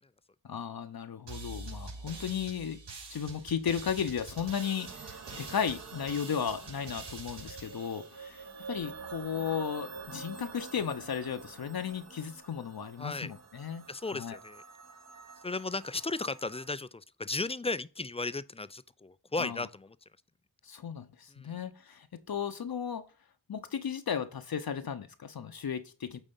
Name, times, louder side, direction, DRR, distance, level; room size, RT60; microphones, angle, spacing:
voice 1, 0.4-2.8 3.1-13.9 14.1-14.4 19.4-19.6 20.6-23.0 23.5-26.2, left 7 dB, 55° left, 0.8 m, -35 dB
sound 1, 1.3-8.8, right 3 dB, 75° right, 3.4 m, -46 dB
sound 2, 3.9-16.7, right 5 dB, 40° right, 1.0 m, -48 dB
voice 2, 13.0-13.3 13.9-14.6 15.4-20.0 21.3-21.6, left 3 dB, 15° left, 0.4 m, -35 dB
9.0 x 3.7 x 5.4 m
cardioid pair, 50°, 43 cm